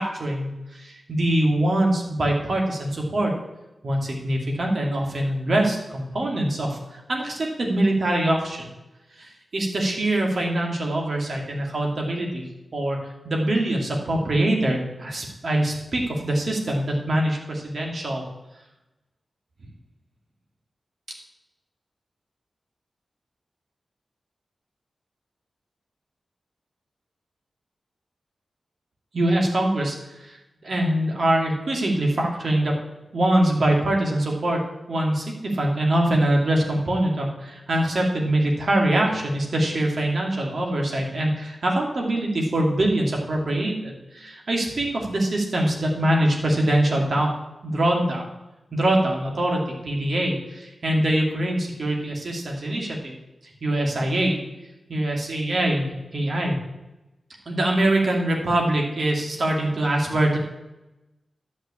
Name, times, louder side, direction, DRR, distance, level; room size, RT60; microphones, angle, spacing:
voice 1, 0.0-3.3 3.8-8.7 9.2-12.4 12.7-13.0 13.2-18.2 29.1-30.0 30.6-32.8 33.1-34.6 34.9-47.3 47.6-48.3 48.7-53.1 53.6-54.4 54.9-56.6 57.5-60.4, right 1 dB, 60° right, 0 dB, 2.5 m, -23 dB
11.0 x 6.0 x 8.3 m, 0.99 s
wide cardioid pair, 130°, 0 cm